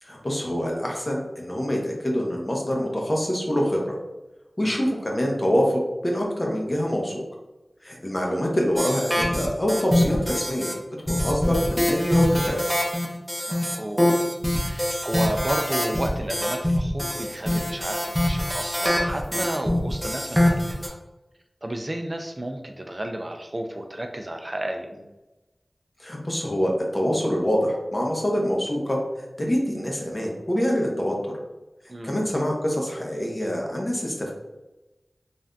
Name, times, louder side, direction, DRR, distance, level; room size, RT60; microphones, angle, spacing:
voice 1, 0.0-4.0 4.6-7.2 7.8-10.7 11.0-12.8 26.0-29.0 29.4-31.3 32.0-34.3, equal, 30° left, -1 dB, 0.8 m, -25 dB
sound 1, 8.8-10.7 11.1-20.9, left 1 dB, ahead, 0.7 m, -24 dB
voice 2, 13.5-14.1 14.5-21.0 21.6-24.9 31.9-32.3, right 1 dB, 40° right, 4 dB, 0.3 m, -32 dB
3.3 x 2.5 x 2.3 m, 1.0 s
wide cardioid pair, 45°, 0 cm